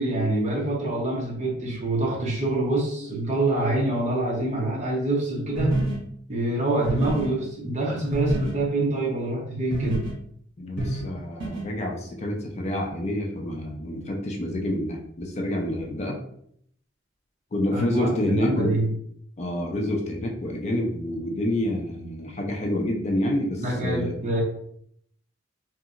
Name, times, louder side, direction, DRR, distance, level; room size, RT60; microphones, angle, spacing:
voice 1, 0.0-5.8 6.3-10.1 17.7-18.9 23.6-24.4, right 2 dB, 40° right, -3 dB, 0.9 m, -26 dB
sound 1, 5.6-6.0 6.8-7.3 8.1-8.5 9.7-10.1 10.8-11.0 11.4-11.6, right 2 dB, 75° right, 1.0 m, -26 dB
voice 2, 10.6-16.2 17.5-18.8 19.4-24.1, left 1 dB, 35° left, 0 dB, 0.4 m, -28 dB
2.8 x 2.6 x 2.4 m, 0.68 s
head